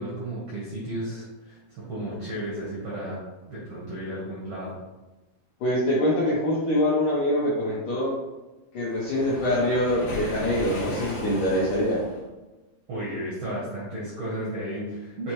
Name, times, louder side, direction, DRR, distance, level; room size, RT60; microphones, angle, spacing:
voice 1, 0.0-4.8 12.9-15.3, right 1 dB, 85° right, -7 dB, 1.4 m, -33 dB
voice 2, 5.6-8.2 8.7-12.0, left 1 dB, 80° left, -6 dB, 1.8 m, -24 dB
Waves surf, 8.9-12.2, equal, 65° left, 1.6 m, -35 dB
6.4 x 2.8 x 3.0 m, 1.1 s
omnidirectional pair, 4.6 m